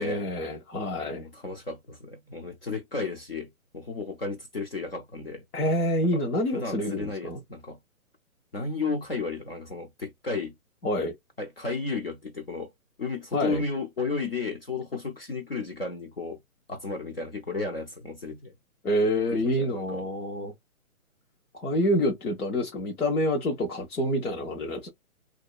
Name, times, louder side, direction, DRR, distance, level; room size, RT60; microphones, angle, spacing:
voice 1, 0.0-1.2 5.5-7.4 10.8-11.1 13.3-13.6 18.8-20.5 21.5-24.9, left 1 dB, 90° left, 1.2 m, -27 dB
voice 2, 1.1-5.4 6.1-6.2 6.5-7.8 8.5-10.5 11.4-12.7 13.0-16.4 16.7-18.5 19.3-20.1, left 4 dB, 45° left, 0.5 m, -33 dB
2.8 x 2.2 x 2.3 m
hypercardioid pair, 175°, 43 cm